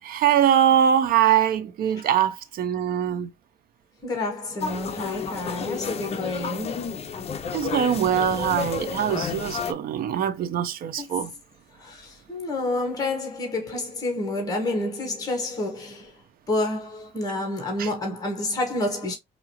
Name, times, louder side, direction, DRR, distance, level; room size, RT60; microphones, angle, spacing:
voice 1, 0.0-3.3 7.5-11.3 17.8-17.9, right 9 dB, 60° right, 0.8 m, -22 dB
voice 2, 4.0-6.9 10.9-11.2 11.8-16.1 16.5-19.2, left 2 dB, 20° left, 1.6 m, -29 dB
sound 1, 4.6-9.7, left 6 dB, 35° left, 0.6 m, -31 dB
4.9 x 2.7 x 2.9 m
cardioid pair, 110°, 17 cm